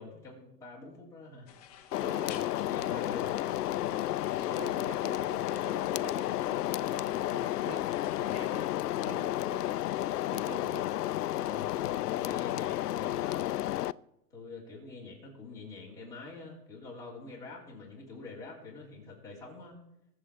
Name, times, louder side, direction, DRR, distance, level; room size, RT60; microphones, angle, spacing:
voice 1, 0.0-1.5 2.6-3.6 11.3-13.5 14.3-19.7, left 3 dB, 5° left, -6 dB, 3.3 m, -46 dB
sound 1, 1.5-8.7, left 9 dB, 25° left, 0.9 m, -52 dB
sound 2, 1.9-13.9, left 14 dB, 70° left, 0.5 m, -32 dB
voice 2, 2.0-2.5 2.8-3.1 3.9-4.1 4.4-7.9 8.2-8.7 9.0-9.7 10.3-10.9 11.4-11.7, right 7 dB, 70° right, 12 dB, 1.2 m, -47 dB
21.0 x 7.8 x 4.5 m, 0.84 s
hypercardioid pair, 165°, 48 cm